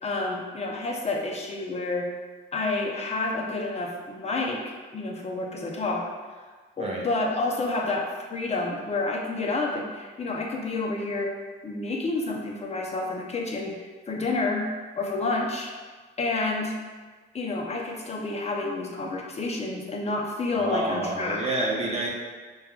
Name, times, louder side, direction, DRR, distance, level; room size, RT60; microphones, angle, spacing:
voice 1, 0.0-2.0 2.5-4.6 4.9-6.1 6.8-11.3 11.6-14.7 15.0-15.7 16.2-16.7 17.3-21.4, left 3 dB, 30° left, -1 dB, 0.7 m, -29 dB
voice 2, 20.5-22.1, right 2 dB, 30° right, -4 dB, 0.9 m, -28 dB
5.3 x 2.3 x 2.3 m, 1.4 s
cardioid pair, 90°, 20 cm